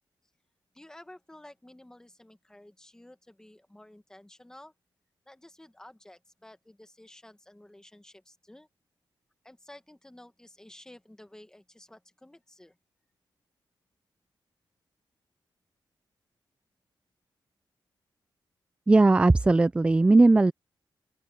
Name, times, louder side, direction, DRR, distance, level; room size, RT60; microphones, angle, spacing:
voice 1, 0.7-4.7 5.3-8.7 9.4-12.8, left 1 dB, 10° left, 1.5 m, -52 dB
voice 2, 18.9-20.5, right 2 dB, 15° right, 0.3 m, -18 dB
open air
wide cardioid pair, 165°, 8 cm